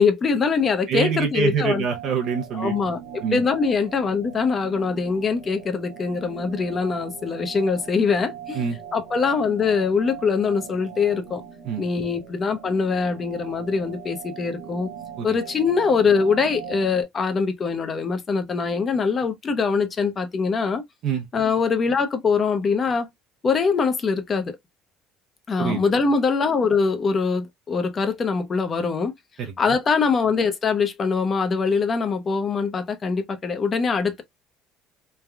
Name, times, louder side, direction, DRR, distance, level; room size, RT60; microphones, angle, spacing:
voice 1, 0.0-1.8 2.5-8.6 8.9-11.4 11.8-14.9 15.2-20.8 21.3-23.1 23.4-24.6 25.5-29.1 29.6-34.2, left 5 dB, 35° left, 0.6 m, -23 dB
voice 2, 0.9-2.7 3.2-3.4 8.5-8.8 11.6-11.8 15.2-15.4 21.0-21.3 25.6-25.8 29.4-29.5, right 6 dB, 60° right, 0.6 m, -25 dB
sound 1, 1.9-17.0, right 8 dB, 85° right, 0.8 m, -40 dB
3.3 x 2.2 x 2.2 m
supercardioid pair, 105°, 0 cm